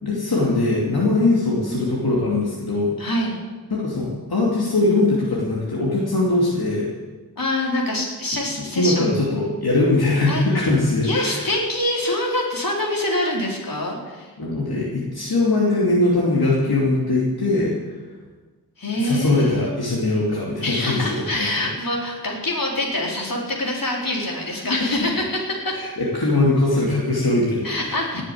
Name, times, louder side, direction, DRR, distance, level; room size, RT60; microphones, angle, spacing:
voice 1, 0.0-2.9 3.7-6.9 8.7-11.4 14.4-17.8 19.0-21.7 24.6-24.8 26.0-28.2, left 2 dB, 80° left, -6 dB, 2.8 m, -21 dB
voice 2, 3.0-3.4 7.4-9.1 10.3-10.4 11.0-14.3 18.8-19.7 20.6-25.8 27.6-28.2, left 1 dB, 65° left, -2 dB, 4.1 m, -25 dB
18.5 x 7.4 x 8.6 m, 1.3 s
wide cardioid pair, 70°, 37 cm